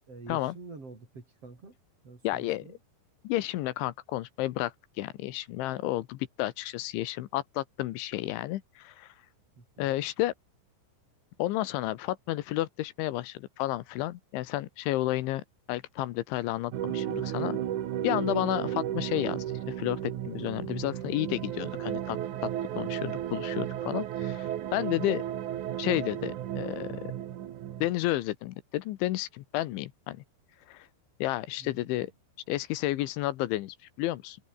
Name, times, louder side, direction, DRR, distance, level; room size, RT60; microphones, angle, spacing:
voice 1, 0.1-1.8 2.0-2.8 9.6-9.9 31.6-31.9, right 3 dB, 30° right, 5.9 m, -47 dB
voice 2, 2.2-2.7 3.3-9.2 9.8-10.3 11.4-15.4 15.7-17.6 18.0-19.4 19.8-22.2 22.4-22.5 22.8-25.2 25.8-27.1 27.8-30.2 30.7-30.9 31.2-32.1 32.5-34.4, left 16 dB, 80° left, 3.5 m, -31 dB
sound 1, 16.7-27.9, right 11 dB, 65° right, 2.1 m, -34 dB
open air
omnidirectional pair, 5.4 m